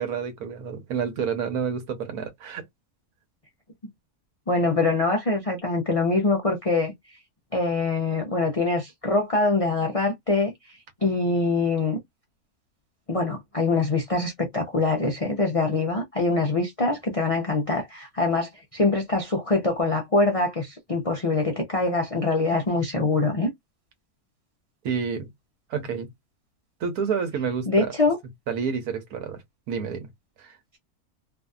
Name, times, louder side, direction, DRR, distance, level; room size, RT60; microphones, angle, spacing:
voice 1, 0.0-2.6 24.8-25.3 25.7-26.1 26.8-27.9 28.5-29.4 29.7-30.1 30.4-30.6, right 6 dB, 85° right, 1.3 m, -29 dB
voice 2, 4.5-6.9 7.5-10.5 11.0-12.0 13.1-23.5 27.7-28.2, left 3 dB, 60° left, 0.3 m, -24 dB
2.7 x 2.6 x 2.3 m
omnidirectional pair, 1.6 m